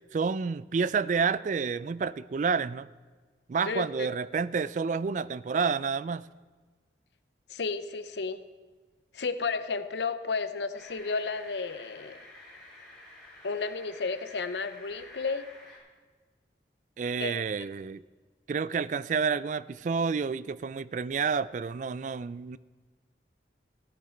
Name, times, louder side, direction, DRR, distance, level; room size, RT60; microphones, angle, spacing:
voice 1, 0.1-2.9 3.5-6.3 17.0-18.0 18.5-22.6, right 5 dB, 45° right, 18 dB, 0.3 m, -29 dB
voice 2, 3.7-4.1 7.5-8.4 9.1-12.2 13.4-15.5 17.2-17.3, left 4 dB, 75° left, 12 dB, 0.7 m, -32 dB
sound 1, 10.7-15.8, left 2 dB, ahead, 4.3 m, -50 dB
15.5 x 9.3 x 4.4 m, 1.4 s
head